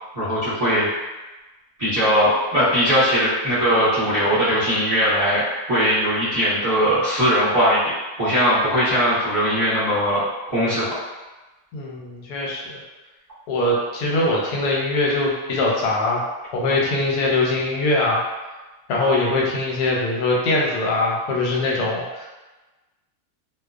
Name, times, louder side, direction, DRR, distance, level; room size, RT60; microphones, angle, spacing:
voice 1, 0.1-0.9 1.8-5.4 5.7-7.9 8.2-10.9, equal, 30° right, -13 dB, 1.0 m, -20 dB
voice 2, 11.7-12.8 13.5-16.3 16.5-18.2 18.9-22.2, left 2 dB, 85° left, -3 dB, 1.1 m, -22 dB
2.3 x 2.3 x 2.3 m, 1.2 s
omnidirectional pair, 1.6 m